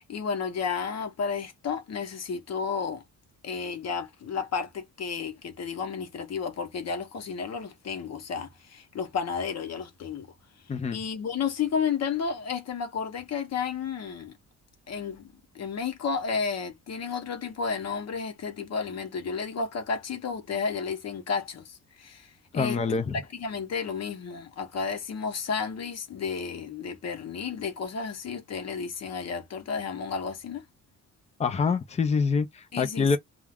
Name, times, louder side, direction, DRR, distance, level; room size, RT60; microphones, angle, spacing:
voice 1, 0.0-3.0 3.4-10.3 10.9-14.3 14.9-23.0 23.3-30.6 32.7-33.2, left 6 dB, 60° left, 0.8 m, -32 dB
voice 2, 22.5-23.2 31.4-33.2, left 5 dB, 25° left, 0.3 m, -26 dB
2.4 x 2.2 x 3.3 m
wide cardioid pair, 170°, 30 cm